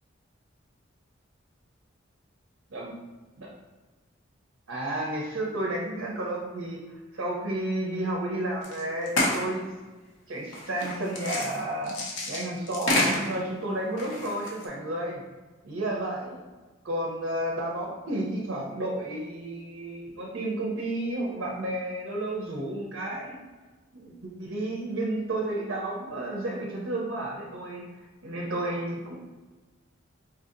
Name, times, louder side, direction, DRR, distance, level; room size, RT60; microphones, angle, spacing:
voice 1, 4.7-6.8 7.1-9.6 10.3-15.2 15.6-16.4 16.8-23.4 23.9-29.2, right 1 dB, 75° right, -2 dB, 0.6 m, -32 dB
sound 1, 8.6-8.8 9.1-9.5 10.5-13.4 14.0-14.7, left 1 dB, 70° left, 0.7 m, -28 dB
4.5 x 2.7 x 2.5 m, 1.3 s
head